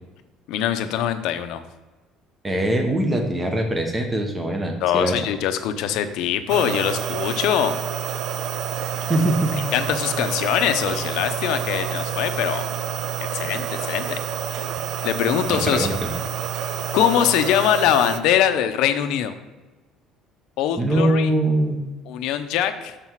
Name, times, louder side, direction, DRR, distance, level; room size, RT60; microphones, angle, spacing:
voice 1, 0.5-1.6 4.8-7.8 9.5-12.7 13.2-14.2 15.0-15.9 16.9-19.3 20.6-21.3 22.1-23.0, left 10 dB, 70° left, 9 dB, 0.6 m, -22 dB
voice 2, 2.4-5.2 9.1-9.6 15.6-16.1 20.8-21.9, right 1 dB, 15° right, 3 dB, 1.0 m, -22 dB
sound 1, 6.5-18.2, right 9 dB, 55° right, 0.5 m, -28 dB
6.7 x 5.7 x 4.5 m, 1.2 s
cardioid pair, 160°, 0 cm